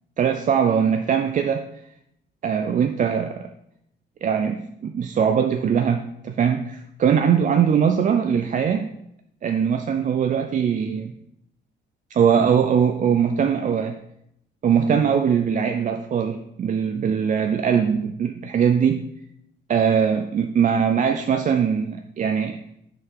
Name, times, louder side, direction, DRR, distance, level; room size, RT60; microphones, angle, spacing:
voice 1, 0.2-1.7 2.4-3.5 4.2-8.9 9.4-11.1 12.1-14.0 14.6-19.0 19.7-22.6, right 7 dB, 40° right, 6 dB, 0.4 m, -21 dB
5.8 x 3.8 x 4.6 m, 0.78 s
cardioid pair, 90°, 20 cm